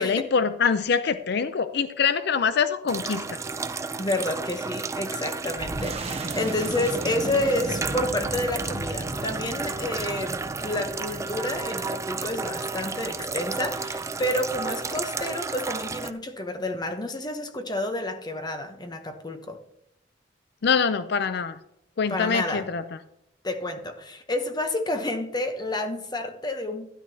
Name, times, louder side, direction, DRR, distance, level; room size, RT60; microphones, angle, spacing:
voice 1, 0.0-3.4 20.6-21.6 22.0-22.8, left 6 dB, 60° left, 0.5 m, -24 dB
sound 1, 2.9-16.1, right 4 dB, 15° right, 0.4 m, -32 dB
voice 2, 4.0-19.6 22.1-22.7 23.4-26.9, left 1 dB, 20° left, 0.8 m, -29 dB
sound 2, 5.6-14.8, right 1 dB, 35° right, 0.8 m, -36 dB
12.5 x 10.5 x 2.8 m
head